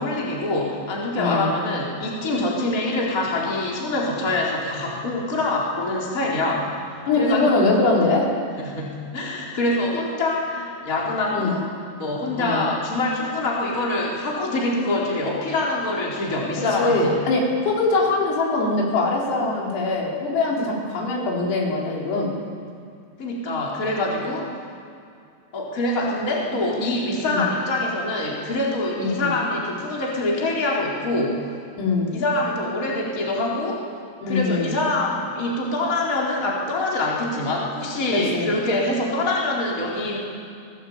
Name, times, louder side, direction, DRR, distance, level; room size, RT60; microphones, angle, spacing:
voice 1, 0.0-6.8 7.2-7.4 8.6-11.7 12.0-17.1 20.6-20.7 23.2-24.5 25.5-31.4 32.1-33.8 34.3-40.2, left 2 dB, 20° left, -4 dB, 3.8 m, -25 dB
voice 2, 1.2-1.5 7.0-8.3 11.3-11.5 12.4-12.7 16.8-22.3 27.3-27.5 29.0-29.3 31.8-32.2 34.2-34.7 38.3-38.5, left 3 dB, 80° left, -3 dB, 6.7 m, -22 dB
22.0 x 19.0 x 8.8 m, 2.5 s
omnidirectional pair, 5.9 m